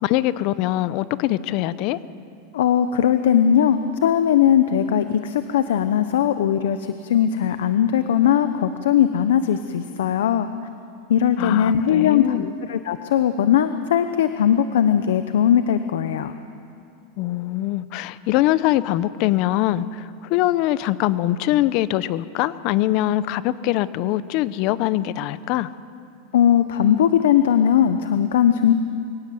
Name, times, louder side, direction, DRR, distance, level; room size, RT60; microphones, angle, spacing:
voice 1, 0.0-2.0 11.4-12.5 17.2-25.7, left 15 dB, 50° left, 16 dB, 0.8 m, -23 dB
voice 2, 2.5-10.5 11.1-16.3 26.3-28.7, left 9 dB, 85° left, 10 dB, 0.8 m, -19 dB
24.0 x 17.5 x 7.8 m, 2.6 s
supercardioid pair, 140°, 0 cm